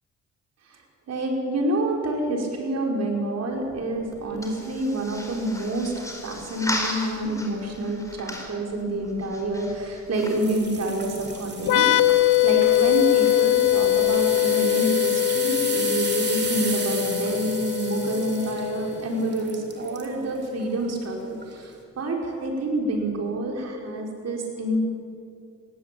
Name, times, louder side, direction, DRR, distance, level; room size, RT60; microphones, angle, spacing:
voice 1, 1.1-5.9 6.2-11.9 12.4-21.7 22.0-24.8, right 1 dB, 55° right, 1 dB, 5.0 m, -27 dB
sound 1, 3.5-14.4, left 1 dB, 10° left, 4.4 m, -38 dB
sound 2, 10.2-20.1 20.6-20.9 21.4-21.5, right 4 dB, 35° right, 3.5 m, -34 dB
sound 3, 11.6-19.1, left 15 dB, 75° left, 1.1 m, -22 dB
18.0 x 17.5 x 8.6 m, 2.4 s
cardioid pair, 90°, 30 cm